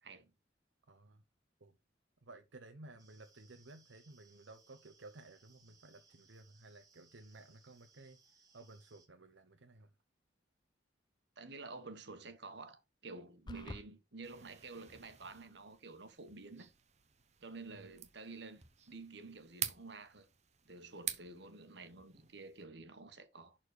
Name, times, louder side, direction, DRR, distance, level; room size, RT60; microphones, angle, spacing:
voice 1, 0.9-1.2 1.6-1.8 2.2-9.9 17.7-18.0, right 2 dB, 85° right, 0.9 m, -56 dB
sound 1, 3.0-9.1, right 4 dB, 20° right, 2.1 m, -68 dB
voice 2, 11.4-16.7 17.4-20.3 20.7-23.6, right 3 dB, 65° right, 1.5 m, -50 dB
sound 2, 13.5-13.9, left 1 dB, 25° left, 0.6 m, -46 dB
sound 3, 14.2-22.6, right 9 dB, 40° right, 1.0 m, -48 dB
11.0 x 4.4 x 4.9 m
head